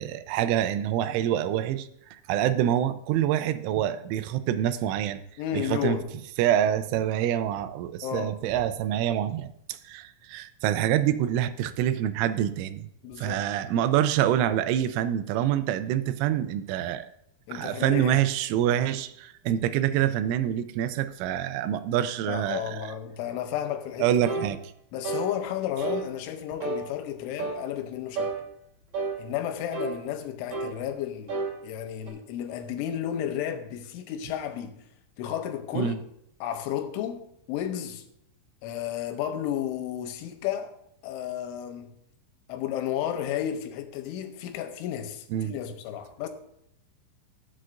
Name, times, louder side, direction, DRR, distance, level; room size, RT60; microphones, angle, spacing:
voice 1, 0.0-5.2 5.5-6.0 6.4-12.9 13.2-17.1 17.5-22.9 24.0-24.6 35.7-36.0 45.3-45.6, right 11 dB, 90° right, 3.1 m, -26 dB
voice 2, 5.4-6.1 8.0-8.4 13.0-13.5 17.5-18.2 22.3-24.1 24.9-28.3 29.2-34.8 35.2-36.0 36.4-38.0 38.6-40.8 41.0-41.9 42.5-46.3, left 10 dB, 85° left, 3.3 m, -32 dB
sound 1, 24.3-24.5 25.0-25.3 25.8-26.1 26.6-26.8 27.4-27.6 28.2-28.4 28.9-29.2 29.7-30.0 30.5-30.8 31.3-31.5 32.1-32.2, right 3 dB, 45° right, 3.9 m, -30 dB
18.5 x 7.5 x 2.6 m
omnidirectional pair, 5.4 m